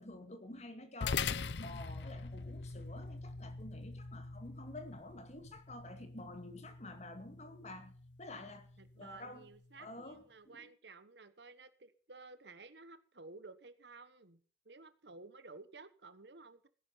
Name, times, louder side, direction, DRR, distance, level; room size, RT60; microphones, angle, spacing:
voice 1, 0.0-8.7 9.0-9.5 9.8-10.7, left 2 dB, 40° left, 2.2 m, -49 dB
sound 1, 1.0-9.7, left 5 dB, 70° left, 0.6 m, -43 dB
voice 2, 8.8-14.4 14.6-16.7, right 3 dB, 70° right, 1.3 m, -54 dB
17.5 x 10.5 x 5.7 m
head